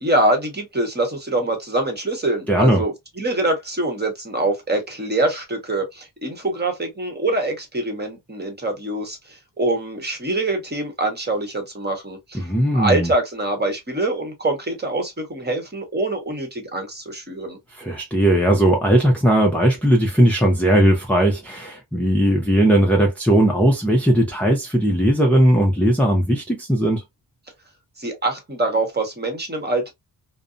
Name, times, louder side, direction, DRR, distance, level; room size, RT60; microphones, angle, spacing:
voice 1, 0.0-12.4 12.7-17.6 28.0-29.9, right 2 dB, 20° right, 1.0 m, -24 dB
voice 2, 2.5-2.8 12.3-13.1 17.7-27.0, right 1 dB, 5° left, 0.5 m, -18 dB
2.5 x 2.1 x 2.4 m
cardioid pair, 100°, 46 cm